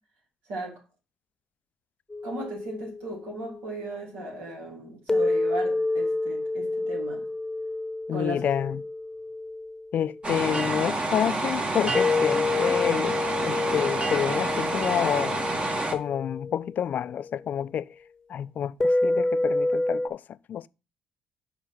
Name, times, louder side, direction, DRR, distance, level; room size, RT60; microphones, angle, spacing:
voice 1, 0.5-0.8 2.2-7.2 8.1-8.5, right 2 dB, 75° right, 3.0 m, -36 dB
sound 1, 2.1-3.7 5.1-10.5 12.0-17.4 18.8-20.1, left 3 dB, 20° left, 0.9 m, -29 dB
voice 2, 8.1-8.8 9.9-13.2 13.5-15.4 15.9-17.9 18.3-20.2 20.5-20.7, left 9 dB, 55° left, 0.3 m, -28 dB
sound 2, 10.2-15.9, right 2 dB, 35° right, 1.5 m, -28 dB
5.0 x 4.7 x 5.8 m
hypercardioid pair, 50°, 3 cm